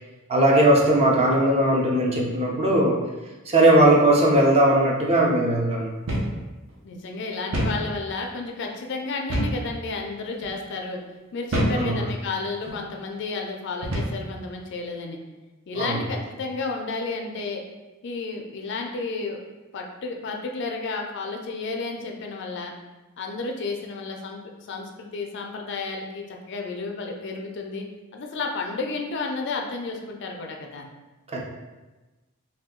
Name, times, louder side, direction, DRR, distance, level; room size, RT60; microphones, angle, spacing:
voice 1, 0.3-3.0 3.5-5.9 11.8-12.0 15.8-16.0 31.3-31.4, right 1 dB, 30° right, -2 dB, 0.5 m, -19 dB
sound 1, 6.1-6.4 6.7-6.8 7.5-7.8 9.3-9.6 10.3-10.5 11.5-11.8 12.6-12.8 13.8-14.2, right 1 dB, 65° right, 0.7 m, -25 dB
voice 2, 6.8-11.0 11.3-15.2 15.7-17.6 18.0-19.4 19.7-22.7 23.2-24.4 24.7-27.9 28.1-30.9, left 3 dB, 60° left, 2 dB, 0.4 m, -32 dB
2.7 x 2.2 x 3.6 m, 1.2 s
head